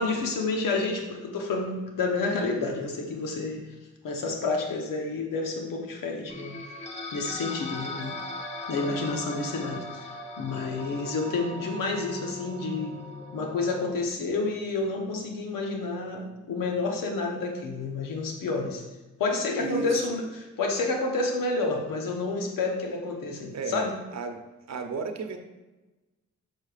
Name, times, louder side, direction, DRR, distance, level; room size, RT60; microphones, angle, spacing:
voice 1, 0.0-3.7 4.0-6.6 7.1-8.2 8.7-13.0 13.3-18.8 19.2-23.9, left 3 dB, 75° left, 2 dB, 1.1 m, -29 dB
sound 1, 6.3-13.9, left 1 dB, 20° left, 1.2 m, -39 dB
voice 2, 19.6-20.1 23.5-24.4 24.7-25.4, right 4 dB, 55° right, 6 dB, 0.8 m, -33 dB
6.5 x 6.2 x 2.5 m, 1.1 s
supercardioid pair, 45°, 33 cm